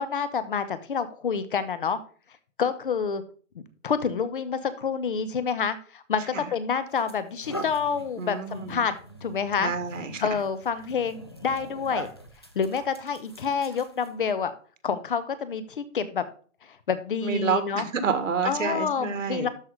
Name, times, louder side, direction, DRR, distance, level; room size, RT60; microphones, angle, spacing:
voice 1, 0.0-2.0 2.6-3.2 3.5-8.9 9.2-9.7 10.2-12.1 12.5-14.5 14.8-16.3 16.6-17.8 18.4-19.5, left 6 dB, 45° left, 13 dB, 1.0 m, -28 dB
sound 1, 6.1-6.3 6.9-14.3, equal, 20° left, 0.4 m, -42 dB
voice 2, 8.2-8.8 9.6-10.3 17.2-19.5, right 6 dB, 80° right, 9 dB, 2.0 m, -29 dB
12.5 x 4.8 x 3.7 m, 0.41 s
hypercardioid pair, 180°, 38 cm